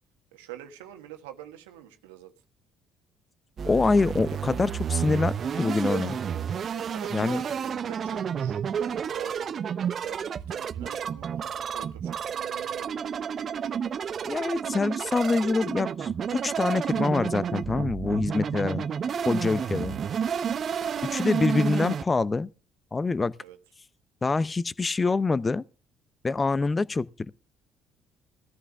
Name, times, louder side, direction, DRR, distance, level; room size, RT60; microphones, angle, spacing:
voice 1, 0.3-2.3 3.8-4.1 5.1-5.2 6.7-9.6 10.0-13.2 23.4-23.6, right 12 dB, 80° right, 1.4 m, -46 dB
voice 2, 3.6-6.2 7.1-7.4 14.2-18.8 19.2-20.0 21.0-22.5 22.9-23.3 24.2-25.6 26.2-27.3, left 3 dB, 25° left, 0.6 m, -25 dB
sound 1, 3.6-22.0, right 7 dB, 50° right, 0.6 m, -30 dB
20.0 x 14.0 x 2.3 m
hypercardioid pair, 50°, 0 cm